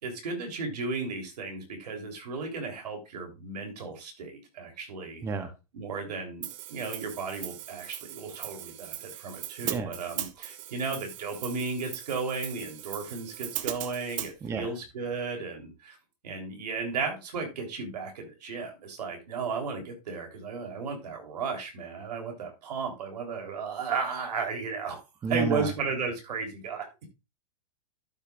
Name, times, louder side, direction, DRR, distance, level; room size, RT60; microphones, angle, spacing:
voice 1, 0.0-5.2 5.7-16.0 16.2-25.0 25.3-27.1, right 4 dB, 80° right, 3 dB, 3.6 m, -34 dB
voice 2, 5.2-5.5 9.6-9.9 14.4-14.7 25.2-25.7, right 5 dB, 15° right, 9 dB, 0.7 m, -30 dB
Hi-hat, 6.4-14.3, right 13 dB, 55° right, 0.9 m, -39 dB
12.0 x 6.4 x 2.5 m, 0.25 s
hypercardioid pair, 150°, 20 cm